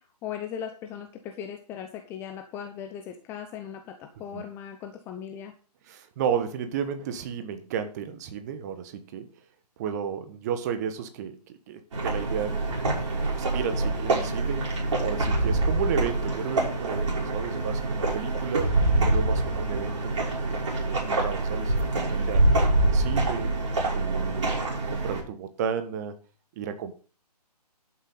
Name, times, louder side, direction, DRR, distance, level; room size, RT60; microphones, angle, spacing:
voice 1, 0.0-5.5, left 8 dB, 10° left, 6 dB, 0.7 m, -38 dB
voice 2, 5.9-9.3 9.8-12.8 13.5-20.1 20.5-20.6 20.9-23.5 23.9-24.6 24.9-26.2 26.6-26.9, right 7 dB, 25° right, 9 dB, 1.3 m, -33 dB
sound 1, 11.9-25.2, right 2 dB, 45° right, 6.5 m, -25 dB
11.0 x 9.1 x 3.9 m, 0.37 s
figure-of-eight pair, 140°, 21 cm